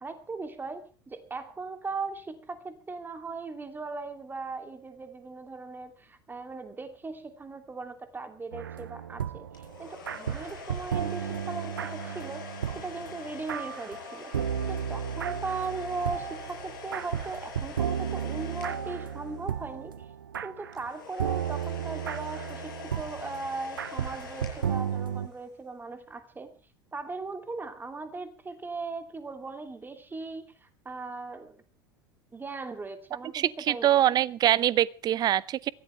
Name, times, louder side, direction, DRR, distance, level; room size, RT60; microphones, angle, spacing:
voice 1, 0.0-14.3 14.7-20.1 20.4-26.5 26.9-31.6 32.3-34.0, right 3 dB, 20° right, 2.8 m, -38 dB
sound 1, 8.5-20.9 21.2-25.3, right 8 dB, 80° right, 0.8 m, -34 dB
sound 2, 9.5-19.7 20.7-25.5, left 5 dB, 70° left, 7.5 m, -45 dB
voice 2, 33.3-35.7, right 12 dB, 40° right, 0.8 m, -24 dB
23.0 x 16.0 x 3.4 m
figure-of-eight pair, 75°, 11 cm